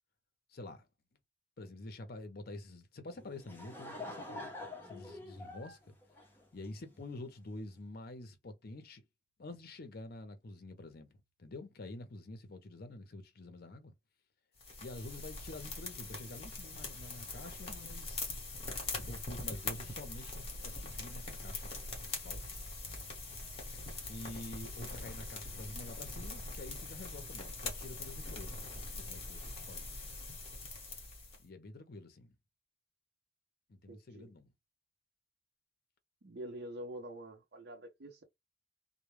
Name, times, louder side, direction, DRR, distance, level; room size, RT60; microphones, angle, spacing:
voice 1, 0.5-0.9 1.6-4.5 4.8-5.9 6.5-9.0 9.4-13.9 14.8-18.4 18.9-21.7 22.0-22.4 24.1-29.9 31.4-32.4 33.7-34.5, left 2 dB, 55° left, 0.6 m, -48 dB
Laughter / Crowd, 3.2-7.0, left 2 dB, 10° left, 0.7 m, -46 dB
sound 1, 14.6-31.4, left 3 dB, 35° left, 1.0 m, -43 dB
voice 2, 33.9-34.3 36.2-38.2, right 1 dB, 60° right, 0.6 m, -46 dB
2.2 x 2.1 x 3.1 m
head